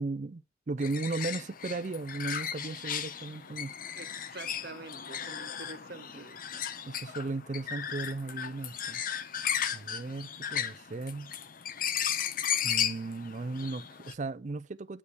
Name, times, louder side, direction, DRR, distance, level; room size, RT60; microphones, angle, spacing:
voice 1, 0.0-3.7 6.1-6.2 6.9-9.0 9.7-11.3 12.6-15.0, right 3 dB, 40° right, 0.5 m, -36 dB
sound 1, 0.8-14.1, left 9 dB, 45° left, 0.7 m, -35 dB
voice 2, 4.0-6.6 10.4-10.8, right 3 dB, 55° right, 1.1 m, -47 dB
8.4 x 5.3 x 6.2 m
head